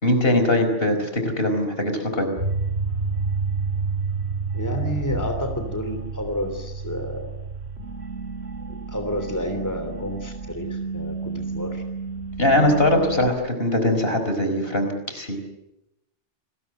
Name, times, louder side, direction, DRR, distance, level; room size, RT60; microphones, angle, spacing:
voice 1, 0.0-2.3 12.4-15.4, left 1 dB, 55° left, 6 dB, 4.9 m, -21 dB
sound 1, 2.4-13.3, right 4 dB, 65° right, 2.4 m, -30 dB
voice 2, 4.5-7.3 8.7-11.8, equal, 15° left, 6 dB, 3.2 m, -30 dB
29.5 x 21.0 x 7.8 m, 0.88 s
omnidirectional pair, 1.2 m